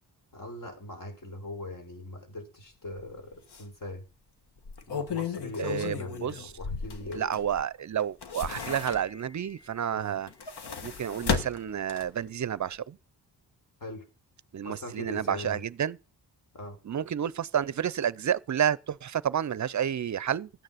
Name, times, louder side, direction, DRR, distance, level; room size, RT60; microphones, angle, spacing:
voice 1, 0.3-4.0 4.9-7.3 9.9-10.2 13.8-14.0 14.6-15.7 16.5-16.8, left 1 dB, 50° left, 4.8 m, -40 dB
sound 1, 3.0-3.1 3.5-3.6 4.6-7.6 8.0-9.3 10.2-12.3 12.7-12.8, left 6 dB, 75° left, 1.6 m, -34 dB
voice 2, 5.6-6.3 7.2-10.3 10.8-13.0 14.5-16.0 16.8-20.5, right 9 dB, 45° right, 0.5 m, -30 dB
14.0 x 9.3 x 5.7 m
wide cardioid pair, 130°, 40 cm